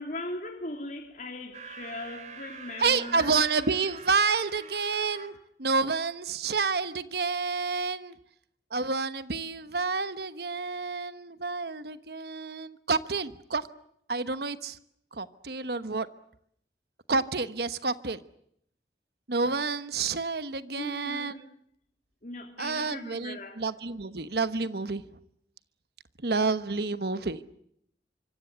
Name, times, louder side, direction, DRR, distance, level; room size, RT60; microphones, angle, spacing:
voice 1, 0.0-3.4 20.8-21.4 22.2-23.6, left 2 dB, 45° left, 3.1 m, -39 dB
sound 1, 1.5-5.3, right 5 dB, 40° right, 3.2 m, -45 dB
voice 2, 2.8-8.1 8.7-13.7 14.1-14.8 15.1-16.1 17.1-18.2 19.3-21.3 22.6-25.0 26.2-27.4, right 4 dB, 65° right, 1.1 m, -29 dB
25.5 x 25.0 x 8.0 m
head